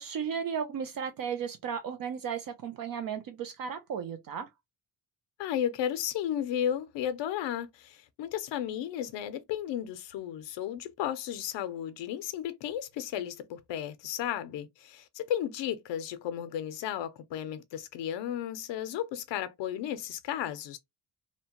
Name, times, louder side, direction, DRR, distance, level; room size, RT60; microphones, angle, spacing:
voice 1, 0.0-4.5, right 7 dB, 50° right, 0.4 m, -35 dB
voice 2, 5.4-20.8, left 10 dB, 75° left, 0.5 m, -34 dB
2.8 x 2.1 x 2.8 m
cardioid pair, 165°, 43 cm